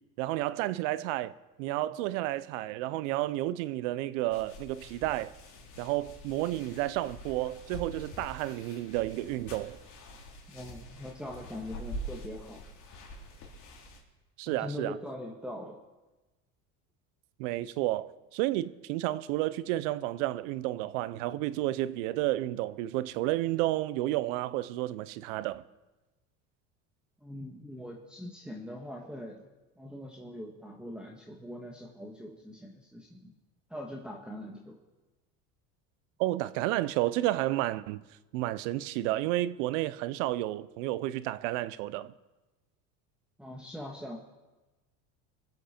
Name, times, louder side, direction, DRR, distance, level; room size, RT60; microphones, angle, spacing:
voice 1, 0.2-5.3 5.8-9.8 14.4-15.0 17.4-25.6 36.2-38.0 38.3-42.1, right 16 dB, 75° right, 0.7 m, -31 dB
sound 1, 4.3-14.0, equal, 50° left, 3.5 m, -45 dB
voice 2, 10.5-12.6 14.5-15.8 27.2-29.4 29.8-33.3 33.7-34.8 43.4-44.2, left 1 dB, ahead, 1.5 m, -42 dB
23.0 x 7.9 x 4.4 m
supercardioid pair, 100°, 38 cm